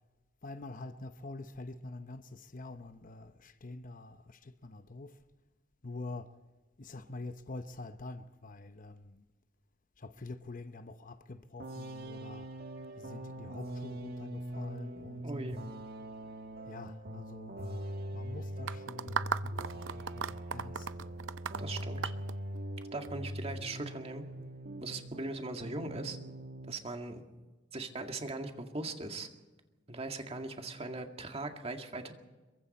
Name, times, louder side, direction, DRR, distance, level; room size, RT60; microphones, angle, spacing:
voice 1, 0.4-5.2 5.8-6.4 6.8-9.2 10.0-12.5 12.9-15.8 16.6-21.3, left 2 dB, 45° left, 0.9 m, -46 dB
sound 1, 11.6-25.3 25.6-26.8, right 1 dB, 55° right, 1.7 m, -42 dB
voice 2, 15.2-15.6 21.6-22.1 22.9-24.2 24.8-26.2 26.7-27.2 27.7-29.3 29.9-32.1, right 2 dB, 35° right, 2.0 m, -39 dB
sound 2, 18.7-23.1, right 6 dB, 90° right, 0.6 m, -36 dB
26.5 x 23.0 x 4.3 m
head